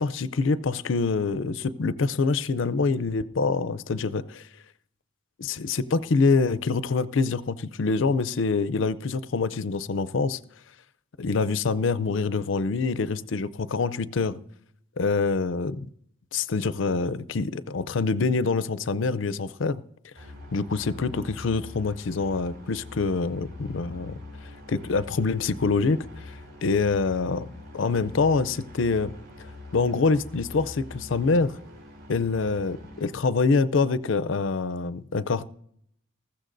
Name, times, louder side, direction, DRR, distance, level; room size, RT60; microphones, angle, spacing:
voice 1, 0.0-4.5 5.4-10.4 11.2-14.4 15.0-15.9 16.3-19.8 20.5-24.2 24.7-27.5 27.7-29.1 29.7-31.6 32.1-35.5, left 4 dB, 65° left, 0.5 m, -25 dB
sound 1, 20.1-33.1, left 2 dB, 55° right, 5.4 m, -44 dB
20.0 x 15.0 x 2.6 m
head